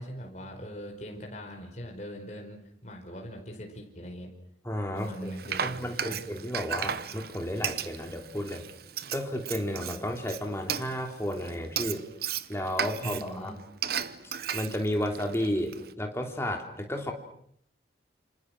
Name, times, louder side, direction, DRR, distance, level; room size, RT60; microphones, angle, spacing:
voice 1, 0.0-4.3 4.9-6.2 13.0-13.6, equal, 40° left, 2 dB, 4.9 m, -41 dB
voice 2, 4.6-5.3 5.6-8.6 9.1-12.0 12.5-13.5 14.5-17.1, equal, 15° left, 3 dB, 3.3 m, -32 dB
Frying (food), 5.0-15.9, right 8 dB, 55° right, 1.0 m, -35 dB
28.5 x 26.5 x 6.2 m, 0.68 s
head